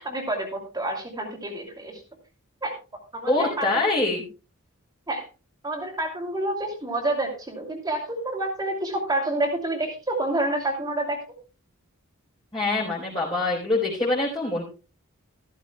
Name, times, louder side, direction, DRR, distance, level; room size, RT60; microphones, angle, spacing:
voice 1, 0.0-2.0 2.6-2.7 3.1-3.9 5.1-5.2 5.6-11.2, right 1 dB, 20° right, 1 dB, 2.6 m, -28 dB
voice 2, 3.3-4.2 12.5-14.6, left 2 dB, 20° left, -6 dB, 3.8 m, -24 dB
14.0 x 14.0 x 2.3 m, 0.33 s
head